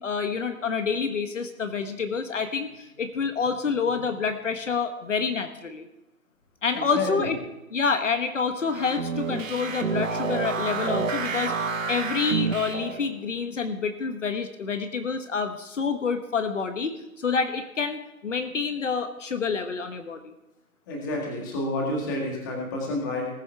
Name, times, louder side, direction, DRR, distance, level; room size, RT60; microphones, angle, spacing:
voice 1, 0.0-5.9 6.6-7.4 7.7-20.3, left 5 dB, 55° left, 7 dB, 1.2 m, -28 dB
voice 2, 6.7-7.3 20.9-23.3, left 1 dB, 15° left, -1 dB, 1.8 m, -29 dB
sound 1, 8.6-13.1, right 5 dB, 60° right, 1.9 m, -29 dB
19.5 x 7.1 x 4.6 m, 0.96 s
hypercardioid pair, 170°, 44 cm